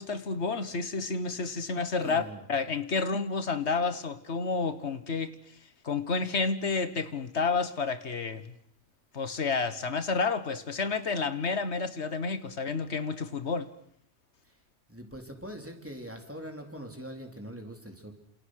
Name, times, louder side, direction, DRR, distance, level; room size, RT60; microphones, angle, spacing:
voice 1, 0.0-2.2 2.5-5.4 5.8-8.5 9.1-13.7, left 4 dB, 80° left, 11 dB, 1.8 m, -30 dB
voice 2, 2.0-2.4 14.9-18.2, equal, 10° right, 3 dB, 4.0 m, -42 dB
29.0 x 27.5 x 6.6 m, 0.67 s
omnidirectional pair, 1.1 m